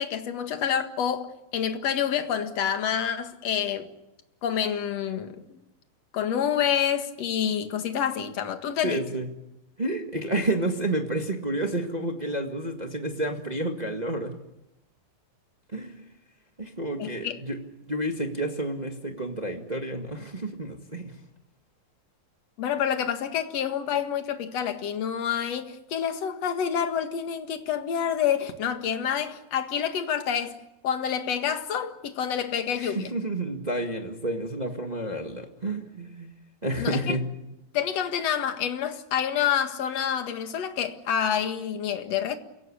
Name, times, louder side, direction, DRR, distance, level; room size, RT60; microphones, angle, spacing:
voice 1, 0.0-3.9 4.4-5.6 6.1-9.0 17.0-17.4 22.6-30.6 30.8-33.1 36.8-37.2 37.7-42.4, left 8 dB, 50° left, 2.5 m, -28 dB
voice 2, 8.8-9.3 9.8-14.4 15.7-16.1 16.6-17.6 17.9-21.1 32.8-36.3 36.6-37.3, right 1 dB, 40° right, 0.5 m, -30 dB
28.5 x 17.0 x 10.0 m
omnidirectional pair, 4.3 m